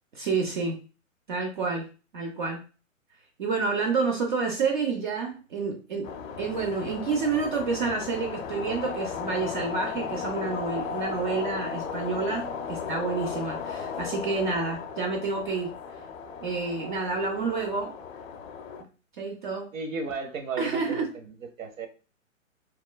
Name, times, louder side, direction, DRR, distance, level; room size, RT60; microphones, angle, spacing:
voice 1, 0.1-0.8 1.3-1.9 2.1-2.6 3.4-6.1 6.4-15.7 16.4-17.9 19.2-19.7 20.6-21.1, right 4 dB, 40° right, 2 dB, 0.5 m, -29 dB
sound 1, 6.0-18.8, left 6 dB, 75° left, 0.6 m, -36 dB
voice 2, 19.7-21.9, right 4 dB, 75° right, 6 dB, 0.8 m, -35 dB
2.9 x 2.3 x 2.2 m, 0.34 s
hypercardioid pair, 140°, 40 cm